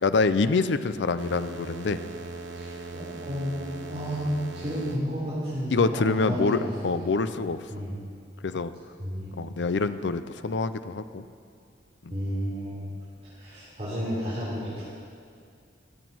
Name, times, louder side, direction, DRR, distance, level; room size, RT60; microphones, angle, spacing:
voice 1, 0.0-2.0 5.7-7.6 8.4-8.7 9.4-11.2 12.0-12.1, left 4 dB, 75° left, 12 dB, 0.5 m, -26 dB
sound 1, 1.2-5.0, right 3 dB, 75° right, 0.9 m, -39 dB
voice 2, 2.5-4.2 4.5-7.1 7.7-7.9 9.0-9.3 12.1-12.9 13.2-14.8, equal, 35° right, -10 dB, 3.8 m, -32 dB
15.5 x 9.1 x 6.1 m, 2.4 s
head